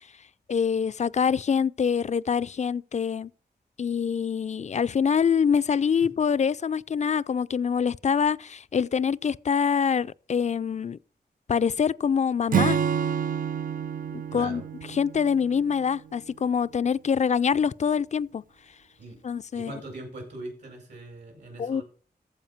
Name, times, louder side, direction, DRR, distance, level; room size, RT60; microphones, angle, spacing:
voice 1, 0.5-3.3 3.8-11.0 11.5-12.8 14.1-14.6 14.9-18.4 19.2-19.7 21.6-21.8, left 7 dB, 45° left, 0.4 m, -25 dB
Acoustic guitar / Strum, 12.5-16.0, right 8 dB, 55° right, 0.4 m, -28 dB
voice 2, 14.3-14.6 19.0-19.2 19.5-21.8, right 2 dB, 80° right, 5.3 m, -40 dB
14.5 x 5.0 x 5.8 m
cardioid pair, 65°, 17 cm